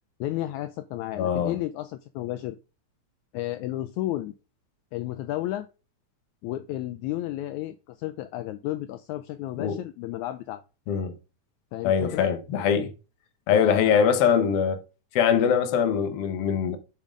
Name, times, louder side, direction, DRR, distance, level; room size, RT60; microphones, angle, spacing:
voice 1, 0.2-2.6 3.3-4.3 4.9-5.7 6.4-10.6 11.7-12.3 13.5-14.0 15.3-15.5, left 14 dB, 80° left, 1.9 m, -32 dB
voice 2, 1.2-1.6 9.6-9.7 10.9-11.2 11.8-12.9 13.5-14.8 15.1-16.8, left 7 dB, 60° left, 1.8 m, -22 dB
11.0 x 3.6 x 5.1 m
omnidirectional pair, 3.5 m